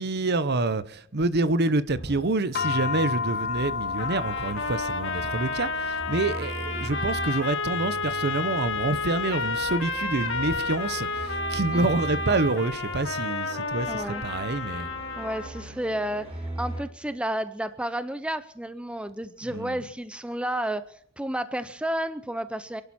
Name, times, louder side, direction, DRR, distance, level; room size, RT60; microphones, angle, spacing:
voice 1, 0.0-14.9 19.4-19.9, right 2 dB, 55° right, 0.9 m, -27 dB
sound 1, 1.9-2.2 2.5-7.3 7.7-16.8, right 1 dB, 30° right, 7.6 m, -40 dB
sound 2, 2.5-13.0, left 5 dB, 50° left, 1.0 m, -35 dB
sound 3, 4.0-15.7, left 3 dB, 65° left, 1.9 m, -31 dB
voice 2, 13.9-14.2 15.2-22.8, right 1 dB, 5° right, 0.6 m, -31 dB
28.0 x 12.0 x 4.3 m
head